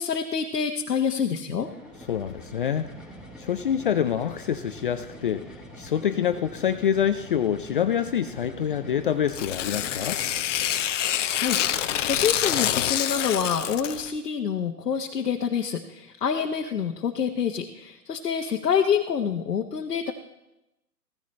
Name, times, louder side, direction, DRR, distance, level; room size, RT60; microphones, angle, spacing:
voice 1, 0.0-1.7 11.3-20.1, left 7 dB, 85° left, 1 dB, 1.3 m, -27 dB
sound 1, 1.5-10.7, equal, ahead, 1.5 m, -45 dB
voice 2, 2.1-2.9 3.4-10.2, left 9 dB, 35° left, 9 dB, 0.4 m, -26 dB
Tearing, 9.3-14.1, left 11 dB, 50° left, 0.8 m, -26 dB
16.0 x 14.5 x 3.2 m, 0.93 s
hypercardioid pair, 135°, 47 cm